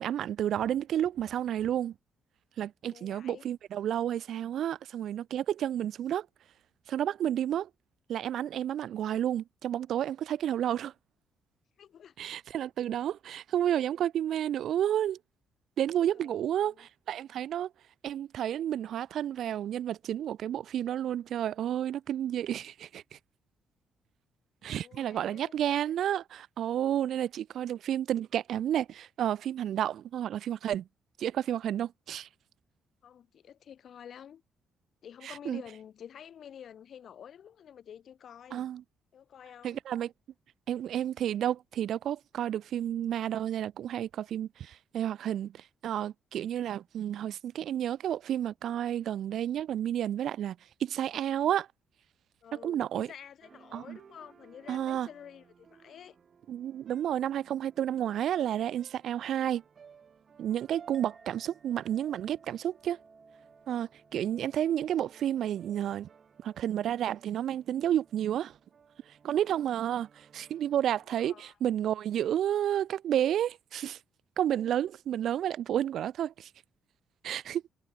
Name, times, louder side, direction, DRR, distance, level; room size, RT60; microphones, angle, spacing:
voice 1, 0.0-1.9 2.6-6.3 6.9-7.7 8.1-10.9 12.2-15.2 15.8-17.7 18.0-23.2 24.6-30.9 31.2-32.3 35.2-35.6 38.5-38.8 39.6-40.1 40.7-51.7 52.5-53.1 53.7-54.0 54.7-55.1 56.5-59.6 60.4-63.0 63.7-66.1 66.4-68.5 69.2-74.0 74.4-76.5 77.2-77.6, right 10 dB, 70° right, 0.8 m, -31 dB
voice 2, 2.9-3.4 11.8-12.1 16.1-16.9 24.6-25.5 33.0-34.4 35.0-38.7 39.1-39.8 52.4-56.2 69.4-69.7 71.1-71.5, left 9 dB, 60° left, 2.2 m, -50 dB
sound 1, 53.4-71.1, right 6 dB, 45° right, 5.1 m, -59 dB
Chink clink, 60.9-69.6, right 4 dB, 30° right, 3.4 m, -62 dB
cardioid pair, 90°, 0 cm